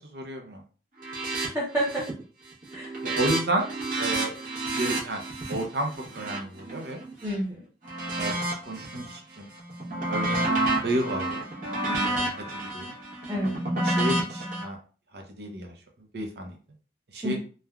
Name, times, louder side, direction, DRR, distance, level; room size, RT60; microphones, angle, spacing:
voice 1, 0.1-0.6 3.0-3.6 4.0-4.3 4.7-5.2 5.5-7.0 8.2-8.4 8.7-9.5 10.0-11.4 12.0-12.9 13.8-14.8 15.1-15.7 16.1-16.6 17.1-17.4, right 1 dB, 70° right, 2 dB, 0.7 m, -31 dB
sound 1, 1.0-1.5 1.8-2.2 2.5-7.3 7.8-9.2 9.5-14.6, right 2 dB, 45° right, 0.9 m, -30 dB
voice 2, 1.4-2.0 2.7-2.9 7.2-7.6 11.9-12.1 13.3-13.5 17.2-17.4, equal, 15° right, -7 dB, 0.6 m, -29 dB
3.3 x 2.2 x 2.3 m, 0.39 s
head